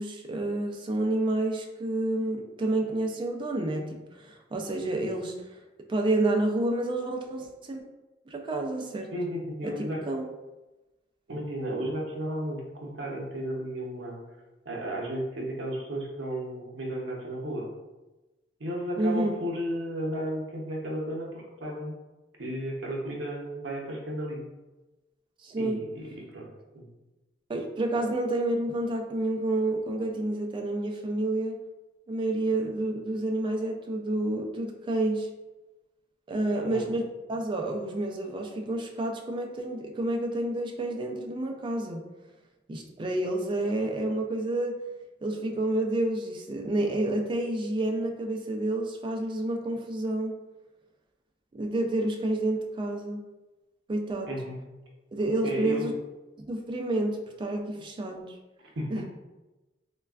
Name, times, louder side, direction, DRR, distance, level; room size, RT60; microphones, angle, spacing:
voice 1, 0.0-5.6 5.9-7.8 8.3-9.1 9.6-10.3 19.0-19.4 25.4-25.8 27.5-31.6 32.1-35.3 36.3-42.0 42.7-44.8 45.2-50.4 51.5-53.2 53.9-54.3 55.1-55.9 56.4-58.3 58.9-59.0, right 1 dB, 25° right, 2 dB, 0.3 m, -29 dB
voice 2, 9.1-10.0 11.3-14.2 14.7-17.7 18.6-21.9 22.4-24.4 25.6-26.5 26.7-26.9 36.5-36.9 54.3-54.6 55.4-55.9 57.7-57.8 58.8-59.1, right 1 dB, 80° right, -1 dB, 0.6 m, -34 dB
3.2 x 2.2 x 2.3 m, 1.1 s
head